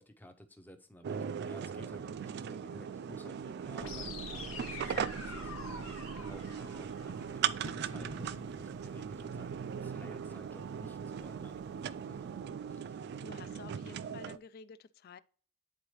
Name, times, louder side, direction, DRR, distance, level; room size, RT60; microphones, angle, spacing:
voice 1, 0.0-5.5 5.9-9.5 9.8-12.3 12.7-13.1 13.4-13.7, left 1 dB, 10° left, 0.6 m, -55 dB
sound 1, 1.0-14.4, right 7 dB, 55° right, 0.3 m, -39 dB
Bird / Fireworks, 3.6-12.8, right 2 dB, 80° right, 0.8 m, -53 dB
sound 2, 3.8-7.8, left 3 dB, 90° left, 1.3 m, -45 dB
voice 2, 13.2-15.2, left 5 dB, 50° left, 0.4 m, -51 dB
9.7 x 3.9 x 3.1 m
head